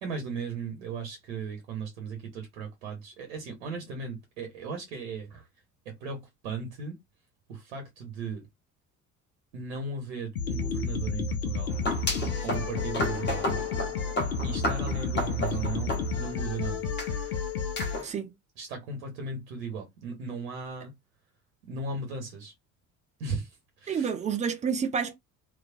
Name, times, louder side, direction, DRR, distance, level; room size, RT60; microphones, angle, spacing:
voice 1, 0.0-5.5 5.8-7.0 7.5-8.5 9.5-11.8 12.4-13.6 14.4-16.9 18.6-20.9 21.7-22.5 23.2-24.1, right 4 dB, 70° right, 0.9 m, -37 dB
sound 1, 10.4-18.0, left 4 dB, 80° left, 0.6 m, -31 dB
sound 2, 11.7-16.5 17.0-17.1 17.8-18.1, left 1 dB, 25° left, 0.9 m, -33 dB
voice 2, 23.9-25.2, right 6 dB, 20° right, 0.4 m, -29 dB
2.3 x 2.2 x 2.4 m
figure-of-eight pair, 50°, 42 cm